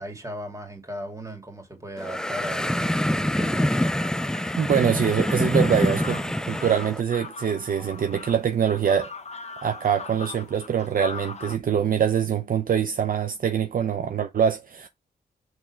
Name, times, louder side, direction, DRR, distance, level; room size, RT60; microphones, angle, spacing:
voice 1, 0.0-3.7, right 1 dB, 20° right, 2.4 m, -37 dB
sound 1, 2.0-7.0, left 1 dB, 5° left, 0.4 m, -25 dB
sound 2, 3.3-11.6, left 4 dB, 40° left, 0.9 m, -41 dB
voice 2, 4.5-9.1 9.6-14.9, right 8 dB, 55° right, 0.6 m, -24 dB
6.4 x 3.3 x 4.4 m
cardioid pair, 95°, 18 cm